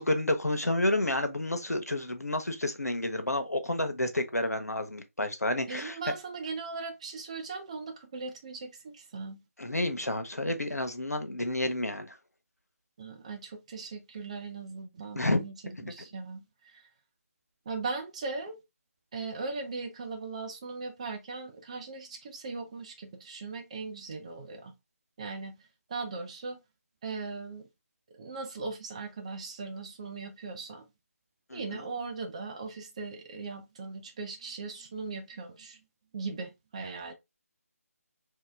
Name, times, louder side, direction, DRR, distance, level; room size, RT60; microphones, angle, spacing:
voice 1, 0.0-6.0 9.6-12.1 15.1-15.4 15.6-15.9 31.5-31.6, left 1 dB, 90° left, 0.8 m, -30 dB
voice 2, 5.7-9.4 13.0-16.9 17.7-18.6 19.1-24.7 25.2-25.5 25.9-26.6 27.0-27.7 28.1-30.9 31.5-35.8 36.1-37.1, right 4 dB, 25° right, 0.6 m, -39 dB
3.0 x 2.8 x 3.4 m
figure-of-eight pair, 155°, 8 cm